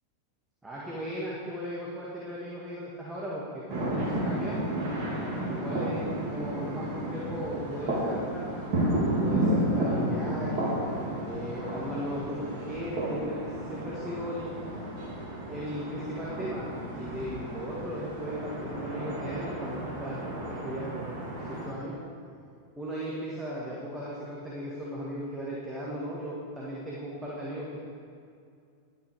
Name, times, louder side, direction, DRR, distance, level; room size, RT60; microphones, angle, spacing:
voice 1, 0.6-4.6 5.5-8.6 9.2-10.7 11.3-14.5 15.5-16.7 16.9-21.9 22.8-27.8, equal, 10° right, -6 dB, 1.9 m, -37 dB
sound 1, 3.7-21.7, right 1 dB, 45° right, 3.1 m, -32 dB
11.5 x 8.7 x 4.9 m, 2.4 s
figure-of-eight pair, 90°, 0 cm